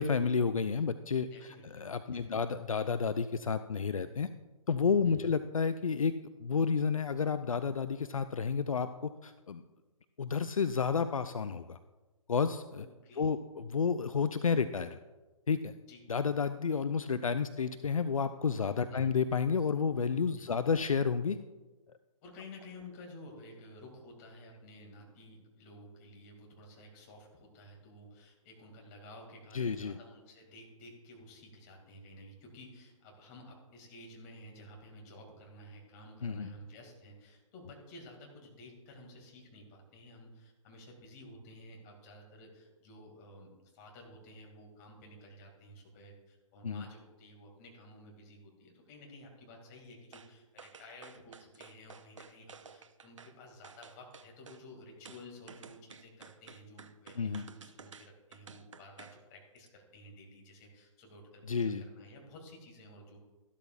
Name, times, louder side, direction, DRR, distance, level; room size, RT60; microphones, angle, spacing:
voice 1, 0.0-4.3 4.7-6.1 6.4-9.6 10.2-11.8 12.3-12.9 13.2-15.0 15.5-15.7 16.1-21.4 29.5-30.0 36.2-36.5 46.6-46.8 57.2-57.5 61.5-61.8, left 5 dB, 75° left, 11 dB, 0.5 m, -31 dB
voice 2, 1.3-1.8 2.1-2.4 5.0-5.3 12.8-13.3 15.9-16.0 18.9-19.1 20.4-20.6 22.2-63.2, left 1 dB, 30° left, 1 dB, 2.4 m, -53 dB
sound 1, 50.1-50.3 50.6-53.3 53.6-54.6 55.1-59.2 59.6-59.7, right 6 dB, 60° right, 0.7 m, -53 dB
13.5 x 12.5 x 2.5 m, 1.2 s
figure-of-eight pair, 125°, 18 cm